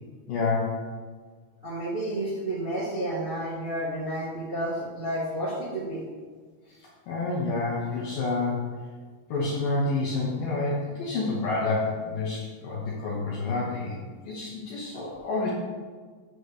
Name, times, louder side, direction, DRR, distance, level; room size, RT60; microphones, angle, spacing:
voice 1, 0.3-0.8 7.1-8.6 9.3-15.5, left 3 dB, 70° left, -5 dB, 2.2 m, -28 dB
voice 2, 1.6-6.0, right 1 dB, 30° right, -8 dB, 1.1 m, -31 dB
9.7 x 3.3 x 6.5 m, 1.5 s
omnidirectional pair, 5.2 m